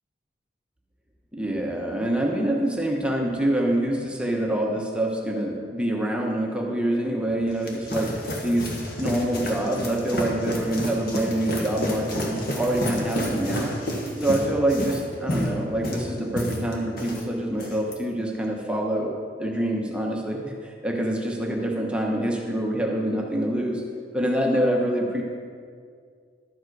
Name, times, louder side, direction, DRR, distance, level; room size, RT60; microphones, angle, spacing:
voice 1, 1.3-8.1 8.4-13.7 14.2-19.1 19.4-23.8 24.1-25.2, right 1 dB, 5° right, -1 dB, 1.0 m, -26 dB
sound 1, 7.3-17.2 17.5-17.9, equal, 60° left, 1.5 m, -30 dB
12.0 x 7.3 x 4.7 m, 2.1 s
head